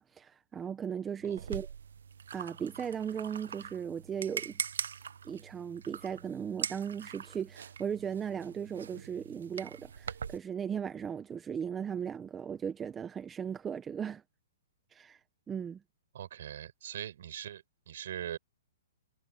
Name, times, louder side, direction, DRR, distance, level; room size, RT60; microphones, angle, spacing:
voice 1, 0.0-1.7 2.3-4.5 5.2-14.2 14.9-15.2 15.5-15.8, right 7 dB, 15° right, 1.3 m, -37 dB
sound 1, 1.4-10.4, right 7 dB, 80° right, 1.1 m, -42 dB
voice 2, 16.1-18.4, right 10 dB, 60° right, 6.1 m, -41 dB
hypercardioid pair, 155°, 0 cm